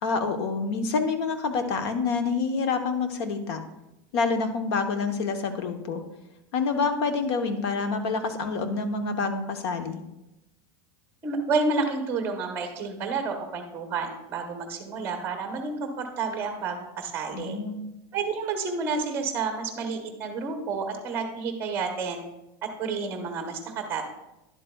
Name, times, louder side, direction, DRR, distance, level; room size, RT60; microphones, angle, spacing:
voice 1, 0.0-3.6 4.1-6.0 6.5-10.0 17.3-17.8, left 4 dB, 70° left, 7 dB, 1.0 m, -27 dB
voice 2, 11.2-17.6 18.1-22.2 22.6-24.0, right 4 dB, 15° right, 4 dB, 0.8 m, -30 dB
10.5 x 7.9 x 2.3 m, 0.93 s
supercardioid pair, 175°, 14 cm